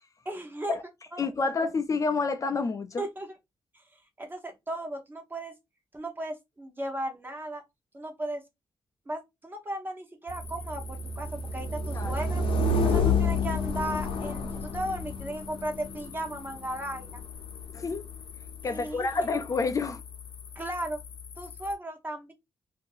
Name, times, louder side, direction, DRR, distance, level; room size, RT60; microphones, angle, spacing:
voice 1, 0.2-0.8 1.1-1.5 3.0-3.4 4.2-5.6 5.9-7.6 7.9-8.4 9.1-12.4 12.8-17.2 18.6-19.3 20.5-21.0 21.4-22.3, right 1 dB, 20° right, 0.9 m, -36 dB
voice 2, 1.2-3.0 11.9-12.2 17.7-18.0 18.6-20.0, left 4 dB, 35° left, 0.4 m, -28 dB
sound 1, 10.3-21.7, left 3 dB, 75° left, 0.7 m, -31 dB
2.7 x 2.7 x 3.8 m
cardioid pair, 115°, 9 cm